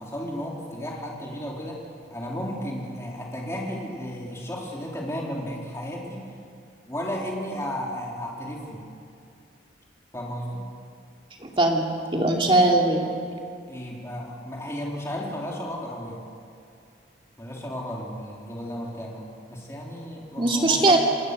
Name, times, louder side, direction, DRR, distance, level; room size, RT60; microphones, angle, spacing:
voice 1, 0.0-1.8 2.1-6.2 6.9-8.9 10.1-10.6 13.7-16.2 17.4-21.0, equal, 15° left, -3 dB, 3.5 m, -34 dB
voice 2, 11.4-13.1 20.4-21.0, right 2 dB, 25° right, 1 dB, 2.5 m, -20 dB
27.5 x 19.5 x 6.7 m, 2.4 s
head